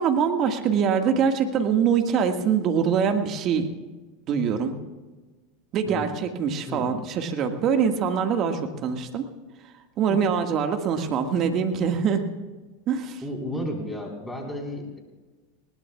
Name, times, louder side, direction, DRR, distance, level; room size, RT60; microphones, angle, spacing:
voice 1, 0.0-3.7 4.3-4.8 5.7-9.2 10.0-12.3 12.9-13.2, right 7 dB, 45° right, 5 dB, 1.7 m, -24 dB
voice 2, 13.2-15.0, equal, 10° left, 0 dB, 4.2 m, -33 dB
20.5 x 19.0 x 2.4 m, 1.2 s
hypercardioid pair, 95°, 0 cm